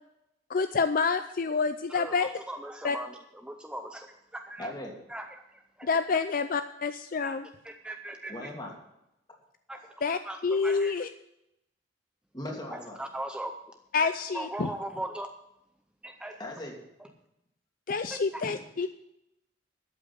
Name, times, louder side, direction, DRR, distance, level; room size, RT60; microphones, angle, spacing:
voice 1, 0.5-2.4 2.8-3.0 5.8-7.5 10.0-11.1 13.9-14.7 17.9-18.9, left 5 dB, 50° left, 10 dB, 0.5 m, -28 dB
voice 2, 1.9-3.1 3.4-4.1 4.3-4.7 5.1-5.2 5.8-5.9 7.2-7.3 7.6-8.3 9.7-9.8 10.3-10.4 10.6-10.9 13.0-13.5 14.3-15.3 16.0-16.4 18.3-18.4, right 1 dB, 5° right, 5 dB, 0.6 m, -38 dB
voice 3, 4.6-4.9 8.3-8.7 9.7-10.0 12.3-13.0 16.4-16.8 18.4-18.5, left 1 dB, 25° left, -1 dB, 2.9 m, -39 dB
13.0 x 8.3 x 6.4 m, 0.84 s
head